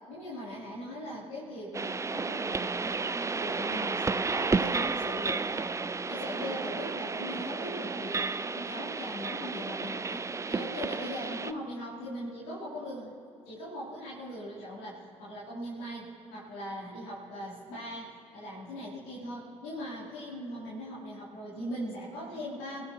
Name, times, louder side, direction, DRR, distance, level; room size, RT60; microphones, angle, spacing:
voice 1, 0.1-13.1 13.4-22.8, equal, 80° left, -8 dB, 3.3 m, -40 dB
sound 1, 1.7-11.5, right 4 dB, 20° right, 0.4 m, -32 dB
26.0 x 16.5 x 3.0 m, 2.6 s
hypercardioid pair, 45°, 15 cm